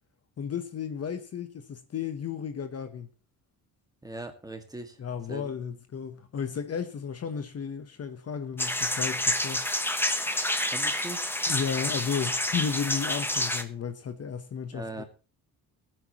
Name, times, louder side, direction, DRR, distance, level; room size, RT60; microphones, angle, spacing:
voice 1, 0.4-3.1 5.0-9.7 11.5-15.0, left 7 dB, 40° left, 1.0 m, -33 dB
voice 2, 4.0-5.0 5.3-5.5 10.7-11.2 14.7-15.0, right 2 dB, 10° right, 1.9 m, -39 dB
sound 1, 8.6-13.6, left 1 dB, 5° left, 1.0 m, -28 dB
19.5 x 9.1 x 3.0 m
cardioid pair, 135°, 36 cm